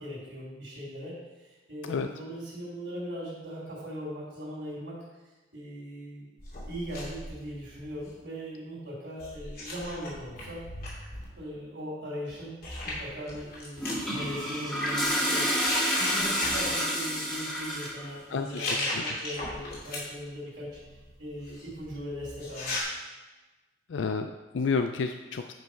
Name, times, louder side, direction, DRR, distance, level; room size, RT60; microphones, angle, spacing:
voice 1, 0.0-5.0 5.5-6.3 6.7-10.6 11.4-12.5 12.8-15.7 15.9-20.8 21.2-22.7, equal, 70° right, -7 dB, 3.0 m, -39 dB
sound 1, 6.4-8.2 9.2-11.2 12.3-12.4 12.6-14.0 14.8-15.1 15.5-16.9 18.3-20.3 20.7-22.8, left 2 dB, 55° left, 2.7 m, -37 dB
Toilet flush, 13.8-18.1, equal, 5° left, 1.7 m, -29 dB
voice 2, 18.3-19.0 23.9-25.5, left 5 dB, 90° left, 7 dB, 0.4 m, -30 dB
9.3 x 5.3 x 4.8 m, 1.2 s
head